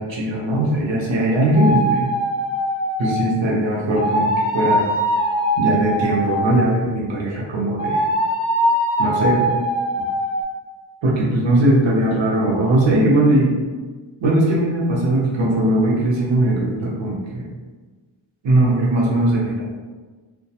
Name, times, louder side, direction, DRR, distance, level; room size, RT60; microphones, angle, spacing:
voice 1, 0.0-2.1 3.0-4.9 5.6-8.0 9.0-9.6 11.0-13.5 14.2-17.5 18.4-19.6, right 1 dB, 90° right, -4 dB, 0.7 m, -19 dB
sound 1, 1.5-3.3 3.9-6.8 7.8-10.4, equal, 50° left, 0.5 m, -21 dB
2.3 x 2.1 x 2.7 m, 1.3 s
wide cardioid pair, 95°, 44 cm